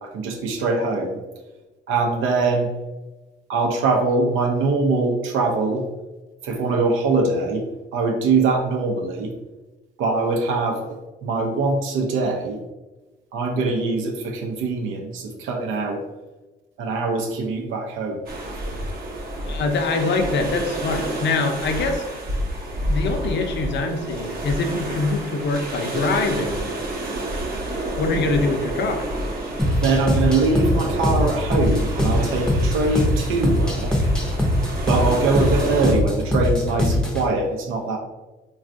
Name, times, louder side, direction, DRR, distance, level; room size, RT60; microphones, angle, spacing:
voice 1, 0.0-1.2 1.9-2.7 3.5-5.8 6.4-7.7 7.9-9.3 10.0-11.0 11.2-12.6 13.3-16.0 16.8-18.7 29.6-33.9 34.9-38.0, right 3 dB, 90° right, 2 dB, 0.6 m, -22 dB
sound 1, 18.3-35.9, right 1 dB, 50° right, 0.7 m, -29 dB
voice 2, 19.5-22.0 22.9-26.6 28.0-29.1, left 3 dB, 60° left, 4 dB, 0.5 m, -24 dB
sound 2, 29.6-37.3, left 1 dB, 5° left, 0.6 m, -22 dB
3.4 x 2.3 x 2.5 m, 1.1 s
cardioid pair, 90°, 20 cm